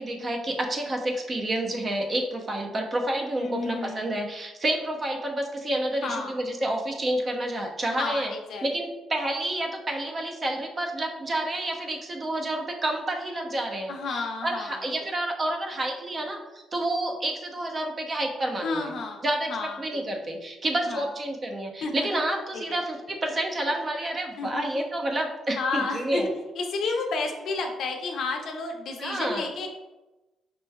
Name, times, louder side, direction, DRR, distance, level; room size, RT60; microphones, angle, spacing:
voice 1, 0.0-8.3 8.6-16.4 16.7-18.9 19.2-19.5 19.8-26.3 29.0-29.5, right 1 dB, 35° right, 2 dB, 0.7 m, -29 dB
voice 2, 3.4-4.1 6.0-6.4 8.0-8.7 13.9-14.9 18.6-19.8 20.9-21.1 21.8-22.1 22.5-22.8 24.4-24.6 25.6-29.7, left 3 dB, 70° left, 2 dB, 0.6 m, -31 dB
5.3 x 3.0 x 2.3 m, 1.1 s
cardioid pair, 90°, 0 cm